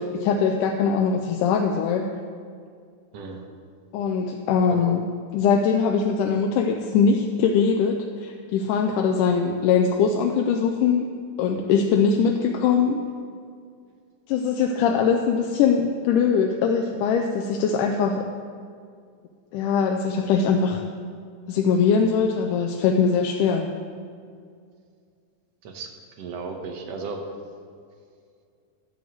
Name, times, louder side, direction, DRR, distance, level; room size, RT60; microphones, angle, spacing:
voice 1, 0.0-2.0 3.9-5.0 5.3-11.1 11.4-13.0 14.3-18.3 19.5-20.8 21.5-23.7, left 6 dB, 85° left, 3 dB, 2.1 m, -22 dB
voice 2, 3.1-3.5 4.7-4.8 25.6-25.9 26.2-27.2, right 4 dB, 65° right, 3 dB, 1.9 m, -34 dB
11.0 x 5.2 x 7.7 m, 2.2 s
omnidirectional pair, 3.7 m